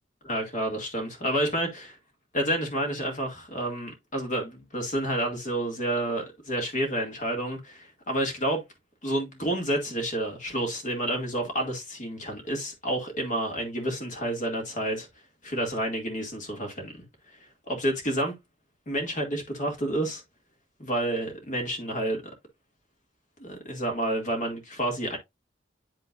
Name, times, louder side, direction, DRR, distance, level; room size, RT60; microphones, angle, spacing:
voice 1, 0.2-2.0 2.3-8.6 9.0-15.1 15.4-17.0 17.7-18.3 18.9-20.2 20.8-22.2 23.4-25.2, right 1 dB, 40° left, 2.2 m, -29 dB
11.0 x 3.7 x 2.5 m
head